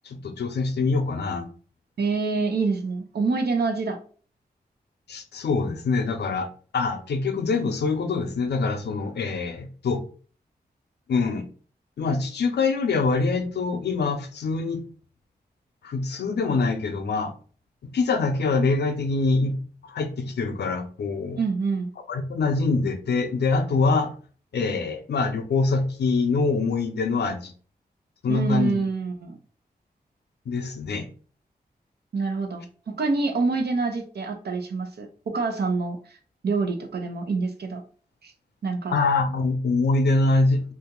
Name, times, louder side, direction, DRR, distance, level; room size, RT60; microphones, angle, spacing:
voice 1, 0.0-1.5 5.1-6.5 6.7-10.0 11.1-11.5 12.0-14.8 15.8-17.3 17.8-19.6 19.8-21.4 22.1-24.1 24.5-27.5 28.2-28.8 30.5-31.1 38.9-40.6, left 3 dB, 90° left, 6 dB, 0.6 m, -24 dB
voice 2, 2.0-4.0 21.4-21.9 28.3-29.4 32.1-36.0 36.4-37.8 38.2-38.3 38.6-38.9, right 4 dB, 75° right, 4 dB, 0.8 m, -26 dB
2.8 x 2.5 x 3.6 m, 0.41 s
cardioid pair, 60°, 17 cm